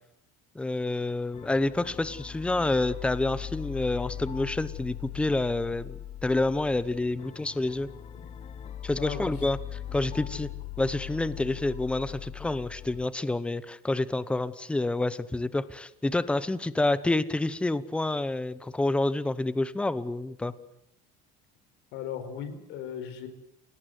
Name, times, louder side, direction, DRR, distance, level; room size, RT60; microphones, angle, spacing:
voice 1, 0.5-7.9 8.8-10.5 10.8-20.5, left 2 dB, 5° left, 16 dB, 0.9 m, -28 dB
sound 1, 1.3-13.1, left 11 dB, 30° left, 1.3 m, -40 dB
voice 2, 9.0-9.3 21.9-23.3, left 8 dB, 65° left, 9 dB, 4.7 m, -37 dB
29.0 x 18.0 x 8.1 m, 0.79 s
cardioid pair, 165°, 20 cm